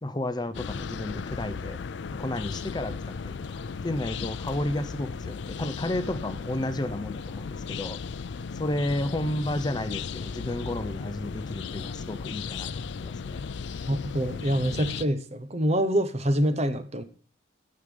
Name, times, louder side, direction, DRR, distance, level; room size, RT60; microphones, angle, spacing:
voice 1, 0.0-1.8 2.1-8.0 8.5-13.4 13.7-13.8, left 1 dB, 20° left, 0.6 m, -32 dB
sound 1, 0.5-15.0, left 5 dB, 65° left, 0.4 m, -36 dB
voice 2, 13.9-17.0, equal, 35° right, 0.8 m, -26 dB
10.5 x 6.6 x 5.3 m
head